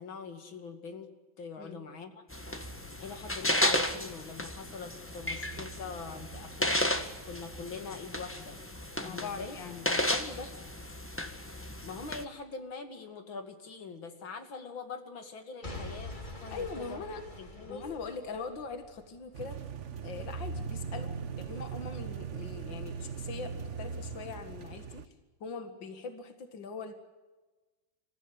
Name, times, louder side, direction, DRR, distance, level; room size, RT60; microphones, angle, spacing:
voice 1, 0.0-2.5 3.0-6.8 7.3-8.6 9.0-9.6 11.8-17.0 17.4-17.9, left 4 dB, 90° left, 7 dB, 3.1 m, -43 dB
sound 1, 2.3-12.2, left 1 dB, 5° left, 1.3 m, -34 dB
voice 2, 9.0-10.5 16.5-17.2 17.7-19.6 20.0-25.1 25.4-26.9, left 4 dB, 70° left, 7 dB, 2.6 m, -41 dB
Boom / Shatter / Crushing, 15.6-19.6 20.2-20.3, left 2 dB, 25° left, 3.0 m, -45 dB
sound 2, 19.3-25.1, right 6 dB, 45° right, 1.2 m, -39 dB
28.0 x 15.5 x 9.5 m, 1.2 s
omnidirectional pair, 2.1 m